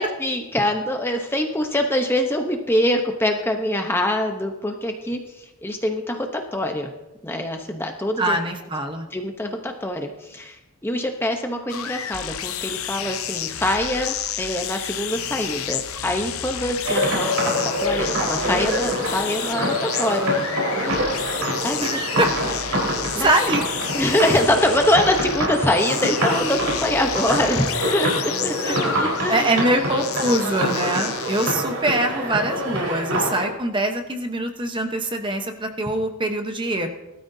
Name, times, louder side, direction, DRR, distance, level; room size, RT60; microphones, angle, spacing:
voice 1, 0.0-6.9 7.2-8.4 9.1-20.7 21.6-22.0 23.1-23.6 23.9-29.5, left 1 dB, 10° left, 4 dB, 0.8 m, -24 dB
voice 2, 8.2-9.1 21.8-22.3 23.2-23.6 28.6-36.9, right 1 dB, 20° right, 6 dB, 0.9 m, -23 dB
sound 1, 11.7-31.5, left 9 dB, 75° left, 0.8 m, -31 dB
sound 2, 16.8-33.5, equal, 80° right, 4.3 m, -25 dB
19.5 x 13.0 x 2.7 m, 0.98 s
head